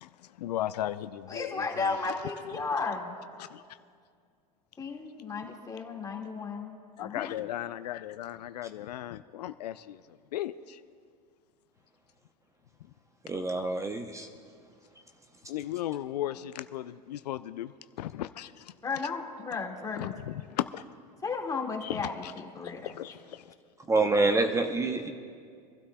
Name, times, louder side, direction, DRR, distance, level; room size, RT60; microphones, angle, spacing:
voice 1, 0.0-1.9 3.4-3.6 7.0-10.0 10.3-10.8 15.5-17.7 18.0-18.7 20.0-20.8 21.8-22.3 22.6-23.5, left 13 dB, 75° left, 12 dB, 0.4 m, -36 dB
voice 2, 1.3-3.2 4.8-7.5 18.8-20.1 21.2-22.9, left 4 dB, 15° left, 0 dB, 1.9 m, -34 dB
voice 3, 13.3-14.3 23.9-25.1, right 3 dB, 15° right, 6 dB, 0.7 m, -26 dB
26.0 x 12.5 x 2.3 m, 2.1 s
hypercardioid pair, 95°, 21 cm